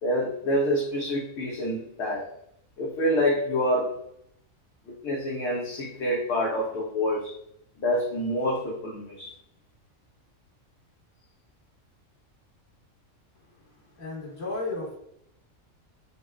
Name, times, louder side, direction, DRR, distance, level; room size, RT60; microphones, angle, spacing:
voice 1, 0.0-2.3 2.8-4.0 4.9-7.4 7.8-9.3, equal, 65° left, -4 dB, 0.8 m, -27 dB
voice 2, 13.3-15.0, left 2 dB, 40° left, -5 dB, 1.2 m, -35 dB
3.6 x 2.0 x 2.3 m, 0.73 s
omnidirectional pair, 1.4 m